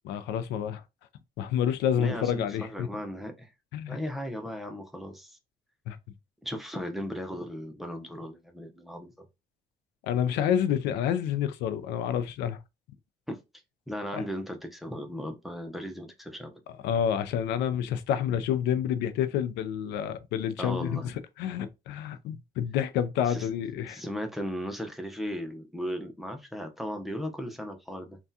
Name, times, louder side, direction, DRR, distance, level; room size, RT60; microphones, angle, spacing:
voice 1, 0.0-0.8 1.4-2.9 3.7-4.0 5.9-6.0 10.0-12.6 14.1-14.2 16.8-24.0, left 9 dB, 85° left, 0.4 m, -29 dB
voice 2, 2.0-3.5 3.9-5.4 6.4-9.3 13.3-13.4 13.9-16.5 20.6-21.1 23.3-23.5 23.9-28.2, equal, ahead, 0.6 m, -36 dB
3.4 x 2.3 x 2.7 m
cardioid pair, 110°, 17 cm